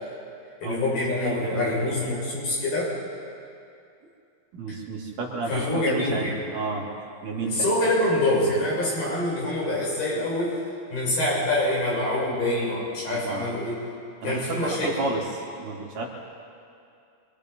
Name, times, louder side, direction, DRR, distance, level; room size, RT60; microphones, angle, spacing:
voice 1, 0.6-2.9 5.5-6.3 7.4-10.6 10.9-13.8 14.2-15.1, left 1 dB, 75° left, -6 dB, 9.2 m, -25 dB
voice 2, 1.2-2.0 4.5-6.9 7.2-7.7 13.1-13.4 14.2-16.1, right 3 dB, 60° right, -2 dB, 4.1 m, -31 dB
27.0 x 24.0 x 5.4 m, 2.5 s
omnidirectional pair, 4.5 m